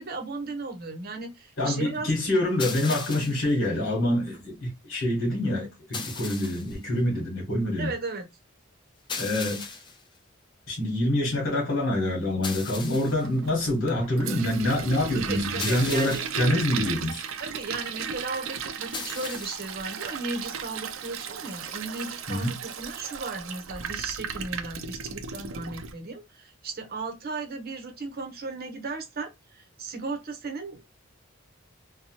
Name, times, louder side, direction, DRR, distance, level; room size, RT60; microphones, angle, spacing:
voice 1, 0.0-2.1 7.8-8.3 15.1-16.2 17.4-30.9, right 3 dB, 45° right, 0.8 m, -36 dB
voice 2, 1.6-7.9 9.2-9.7 10.7-17.2 22.3-22.6, left 1 dB, 60° left, 1.3 m, -26 dB
sound 1, 2.6-3.5 5.9-6.8 9.1-10.0 12.4-13.3 15.6-16.5 18.9-19.8, left 4 dB, 20° left, 0.4 m, -37 dB
Toilet flush, 13.2-25.9, right 6 dB, 70° right, 0.4 m, -35 dB
2.8 x 2.2 x 2.8 m
head